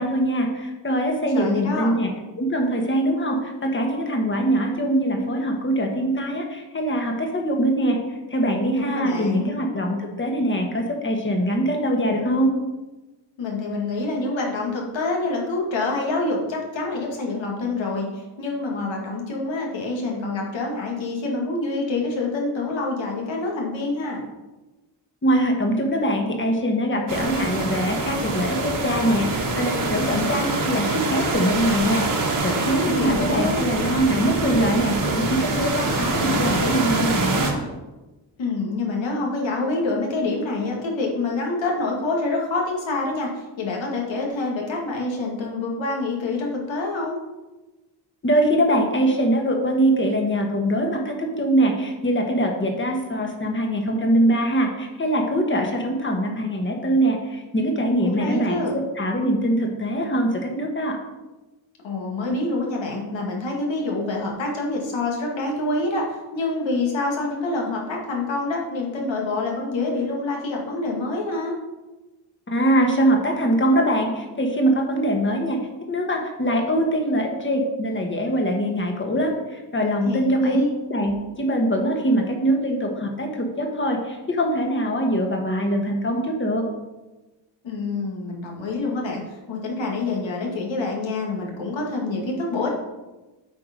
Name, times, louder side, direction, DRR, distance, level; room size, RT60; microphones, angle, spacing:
voice 1, 0.0-2.1 2.4-8.0 8.3-12.5 25.2-37.6 48.2-61.0 72.5-75.6 75.9-80.6 80.9-81.1 81.4-86.6, right 1 dB, 25° left, 2 dB, 1.4 m, -23 dB
voice 2, 1.3-1.9 8.7-9.5 13.4-24.2 32.8-33.6 38.4-47.2 58.0-58.8 61.8-71.6 80.0-80.7 87.6-92.7, left 2 dB, 80° left, -1 dB, 2.0 m, -26 dB
sound 1, 27.1-37.5, right 3 dB, 45° right, 1.5 m, -25 dB
8.4 x 4.7 x 5.2 m, 1.1 s
wide cardioid pair, 125°, 45 cm